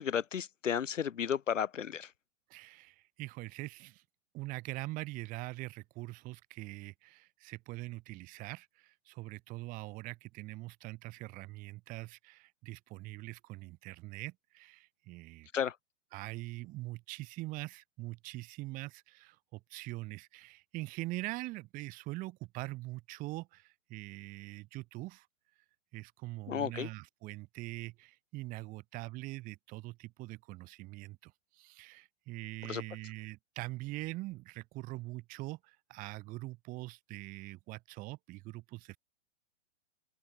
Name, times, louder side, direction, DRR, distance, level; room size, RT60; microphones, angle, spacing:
voice 1, 0.0-2.1 15.5-15.8 26.5-26.9 32.6-32.8, left 8 dB, 80° left, 1.1 m, -33 dB
voice 2, 2.5-4.0 4.3-15.5 16.1-25.3 25.9-39.0, right 20 dB, 20° right, 0.8 m, -43 dB
open air
hypercardioid pair, 115°, 37 cm